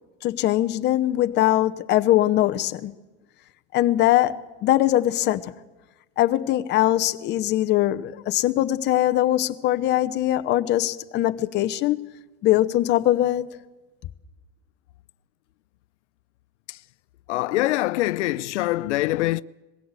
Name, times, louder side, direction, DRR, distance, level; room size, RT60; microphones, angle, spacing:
voice 1, 0.2-2.9 3.7-5.5 6.2-12.1 12.4-13.5, left 14 dB, 30° left, 0.8 m, -21 dB
voice 2, 17.3-19.4, left 17 dB, 85° left, 0.6 m, -24 dB
20.5 x 16.0 x 8.2 m
supercardioid pair, 145°, 34 cm